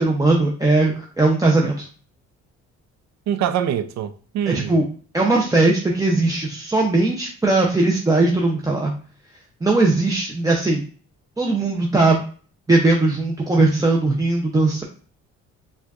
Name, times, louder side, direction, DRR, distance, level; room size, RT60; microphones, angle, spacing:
voice 1, 0.0-1.8 4.5-4.8 5.1-8.9 9.6-10.9 11.4-12.2 12.7-14.8, right 2 dB, 10° right, 0.6 m, -19 dB
voice 2, 3.3-4.8, right 9 dB, 65° right, 0.4 m, -24 dB
4.3 x 2.4 x 2.4 m
cardioid pair, 90°, 30 cm